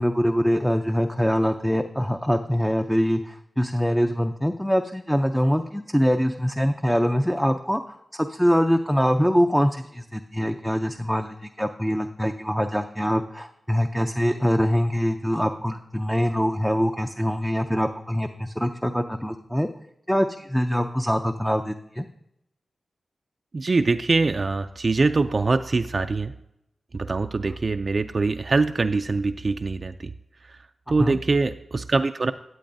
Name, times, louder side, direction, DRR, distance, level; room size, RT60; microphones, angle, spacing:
voice 1, 0.0-19.7 20.1-22.1 31.0-31.2, equal, 5° left, 5 dB, 0.5 m, -24 dB
voice 2, 23.5-26.3 26.9-30.1 30.4-30.6 30.9-32.3, right 3 dB, 50° right, 7 dB, 0.3 m, -23 dB
13.5 x 8.4 x 2.6 m, 0.81 s
cardioid pair, 50°, 0 cm